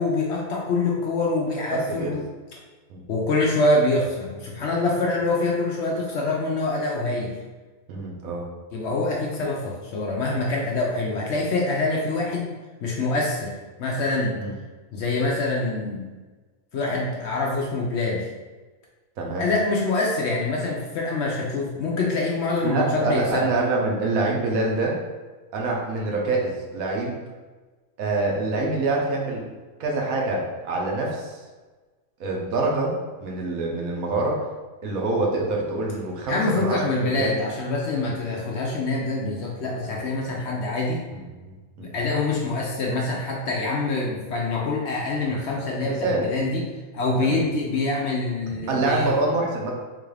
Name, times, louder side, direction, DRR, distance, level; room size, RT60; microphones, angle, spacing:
voice 1, 0.0-2.3 3.1-7.3 8.7-12.5 12.8-14.4 14.9-16.1 16.7-18.3 19.4-23.5 36.3-41.1 41.8-46.6 46.9-49.2, left 2 dB, 65° left, -2 dB, 0.7 m, -25 dB
voice 2, 7.9-8.4 14.4-14.5 19.2-19.4 22.6-25.0 25.5-27.2 28.0-29.4 29.8-31.4 32.2-34.5 34.8-36.8 37.1-37.4 41.1-41.9 45.8-46.2 47.2-47.4 48.7-49.7, right 2 dB, 80° right, -1 dB, 1.2 m, -25 dB
3.8 x 2.4 x 3.2 m, 1.3 s
omnidirectional pair, 1.5 m